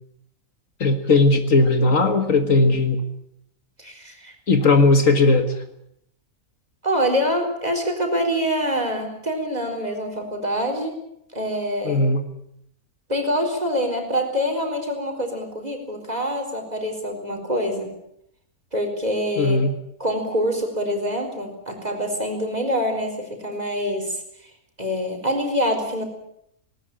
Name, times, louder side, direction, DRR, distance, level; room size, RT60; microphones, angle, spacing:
voice 1, 0.8-3.0 4.5-5.6 11.8-12.2 19.4-19.7, left 3 dB, 60° left, 8 dB, 1.9 m, -17 dB
voice 2, 3.8-4.3 6.8-11.0 11.3-12.0 13.1-18.0 18.7-19.6 20.0-24.2 24.8-26.0, equal, 25° right, 4 dB, 4.5 m, -25 dB
19.5 x 19.0 x 8.9 m, 0.75 s
omnidirectional pair, 1.6 m